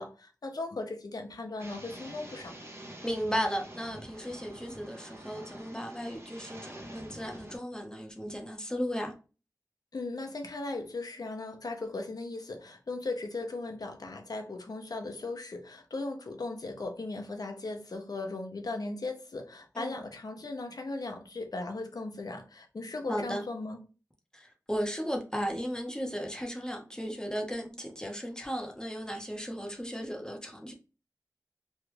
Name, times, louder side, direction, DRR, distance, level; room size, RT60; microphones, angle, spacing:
voice 1, 0.0-2.5 9.9-23.8, left 2 dB, 80° left, 0.7 m, -37 dB
sound 1, 1.6-7.6, right 1 dB, 40° right, 0.8 m, -47 dB
voice 2, 3.0-9.1 19.7-20.0 23.1-23.4 24.3-30.7, equal, 10° left, 0.8 m, -35 dB
3.1 x 2.4 x 3.2 m
wide cardioid pair, 55°, 6 cm